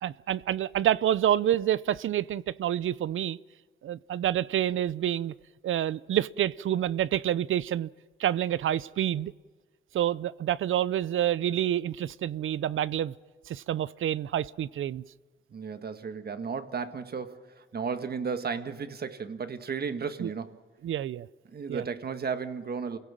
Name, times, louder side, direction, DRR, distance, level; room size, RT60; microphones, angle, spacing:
voice 1, 0.0-3.4 3.8-5.3 5.6-7.9 8.2-9.3 9.9-13.1 13.5-15.0 20.2-20.3 20.8-21.3 21.7-21.8, right 11 dB, 80° right, 19 dB, 0.6 m, -28 dB
voice 2, 15.5-20.6 21.5-23.0, right 5 dB, 50° right, 9 dB, 1.5 m, -34 dB
29.0 x 17.0 x 7.5 m, 1.4 s
wide cardioid pair, 115°, 20 cm